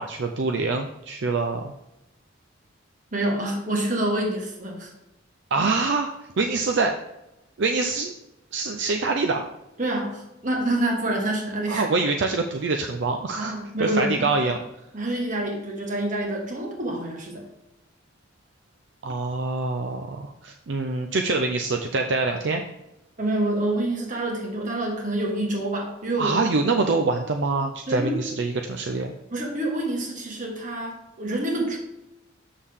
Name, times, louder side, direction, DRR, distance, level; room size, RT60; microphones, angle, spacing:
voice 1, 0.0-1.7 5.5-6.1 6.4-6.9 7.6-8.1 8.5-9.4 11.7-14.6 19.0-22.6 26.2-29.1, right 3 dB, 60° right, 4 dB, 0.5 m, -25 dB
voice 2, 3.1-4.9 9.8-11.9 13.4-14.3 14.9-17.4 23.2-26.5 27.9-28.3 29.3-31.8, right 1 dB, 40° right, 0 dB, 1.6 m, -27 dB
7.3 x 6.5 x 3.6 m, 0.91 s
head